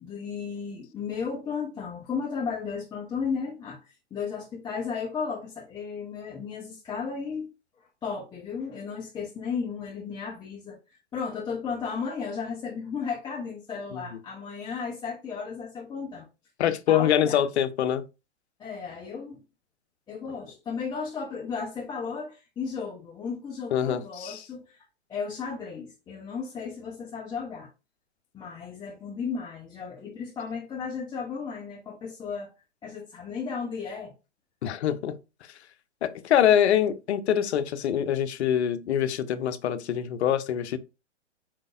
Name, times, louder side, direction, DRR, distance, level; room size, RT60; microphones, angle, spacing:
voice 1, 0.0-7.5 7.8-16.3 16.7-17.4 18.6-19.4 20.1-24.8 25.1-27.7 28.3-32.5 32.8-34.1, left 5 dB, 10° left, 0.8 m, -34 dB
voice 2, 16.6-18.0 23.7-24.4 34.6-35.1 36.0-40.8, left 10 dB, 65° left, 0.7 m, -24 dB
4.5 x 3.8 x 2.6 m
hypercardioid pair, 130°, 36 cm